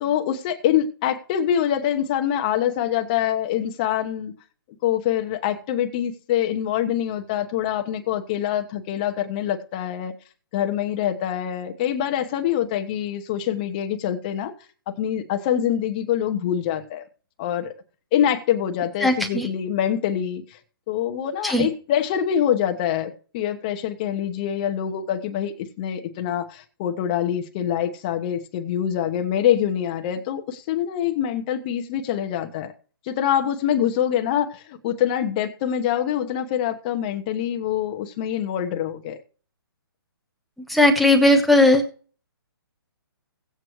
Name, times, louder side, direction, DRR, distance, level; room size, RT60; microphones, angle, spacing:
voice 1, 0.0-4.3 4.8-10.1 10.5-14.5 14.9-17.0 17.4-17.7 18.1-20.6 20.9-32.7 33.1-39.2, left 10 dB, 20° left, 0.9 m, -25 dB
voice 2, 19.0-19.5 21.4-21.7 40.7-41.8, left 1 dB, ahead, 0.8 m, -17 dB
16.5 x 8.0 x 3.1 m
hypercardioid pair, 170°, 13 cm